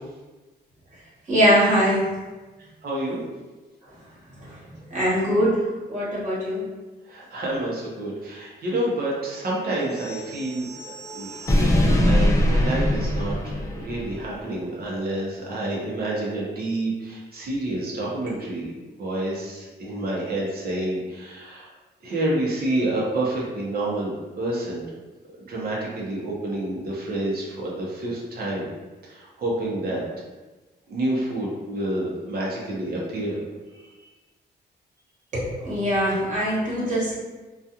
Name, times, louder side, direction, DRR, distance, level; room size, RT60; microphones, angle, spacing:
voice 1, 1.3-2.0 4.4-4.5 4.9-5.5 5.9-6.6 35.3-37.1, equal, 45° right, -9 dB, 1.2 m, -22 dB
voice 2, 2.8-3.2 7.0-11.3 12.0-18.7 19.0-21.7 22.0-24.8 25.5-28.7 29.0-30.0 30.9-33.4 33.7-33.9, right 1 dB, 60° right, -4 dB, 0.7 m, -28 dB
sound 1, 9.9-14.2, left 1 dB, 20° left, 0.3 m, -23 dB
2.3 x 2.3 x 2.8 m, 1.2 s
wide cardioid pair, 165°, 18 cm